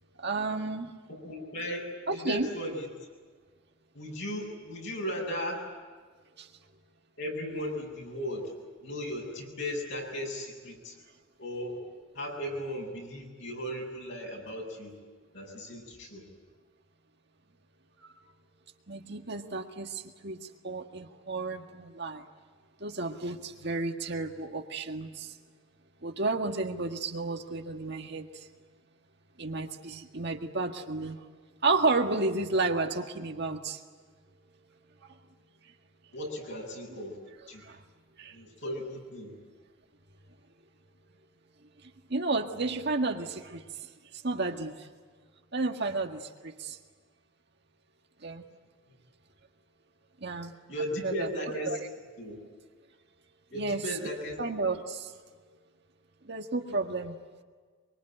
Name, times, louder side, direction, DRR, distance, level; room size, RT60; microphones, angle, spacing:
voice 1, 0.2-0.9 2.1-2.5 6.4-6.5 18.0-18.1 18.9-22.2 22.8-25.3 26.0-28.5 29.4-31.3 31.6-33.8 37.6-37.8 38.2-38.4 42.1-43.6 44.1-44.9 45.5-46.8 48.2-48.4 50.2-50.5 51.0-51.3 51.7-51.8 53.5-53.8 54.4-55.1 56.2-57.1, right 3 dB, 55° right, 4 dB, 1.8 m, -32 dB
voice 2, 1.2-1.9 2.1-2.9 3.9-5.6 7.2-8.4 8.8-10.9 11.4-11.8 12.1-14.9 15.3-16.2 36.1-37.1 37.5-37.6 38.3-39.3 50.7-51.7 52.2-52.4 53.5-54.4 56.7-56.8, equal, 65° left, 0 dB, 7.8 m, -36 dB
24.5 x 24.0 x 9.1 m, 1.5 s
head